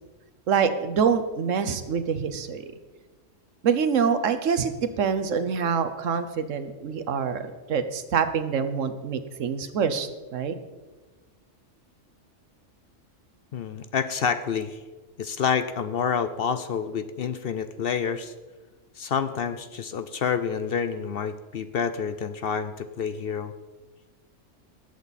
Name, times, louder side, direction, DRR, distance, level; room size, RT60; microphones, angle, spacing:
voice 1, 0.5-2.6 3.6-4.7 5.0-10.6, right 6 dB, 80° right, 10 dB, 1.3 m, -25 dB
voice 2, 13.5-14.8 15.2-18.3 19.0-23.5, left 7 dB, 60° left, 11 dB, 0.7 m, -28 dB
20.5 x 8.1 x 4.1 m, 1.3 s
omnidirectional pair, 1.3 m